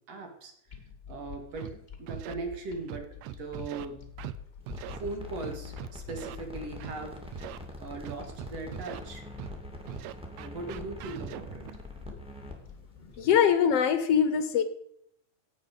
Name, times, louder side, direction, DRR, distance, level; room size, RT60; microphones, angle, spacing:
voice 1, 0.1-0.5 1.1-4.0 5.0-7.5 7.8-9.2 10.3-11.8, right 3 dB, 55° right, 4 dB, 3.0 m, -39 dB
sound 1, 0.7-13.8, left 8 dB, 25° left, 1.7 m, -49 dB
Scratching (performance technique), 1.6-1.7 2.1-2.3 2.9-3.9 4.2-4.4 4.7-5.0 5.4-6.4 6.8-7.0 7.3-7.6 8.1-9.0 9.4-9.5 9.9-11.7, right 13 dB, 80° right, 1.6 m, -41 dB
sound 2, 4.6-13.2, left 1 dB, ahead, 2.0 m, -44 dB
voice 2, 13.2-14.6, left 8 dB, 65° left, 11 dB, 1.6 m, -23 dB
16.5 x 8.9 x 5.3 m, 0.72 s
omnidirectional pair, 3.6 m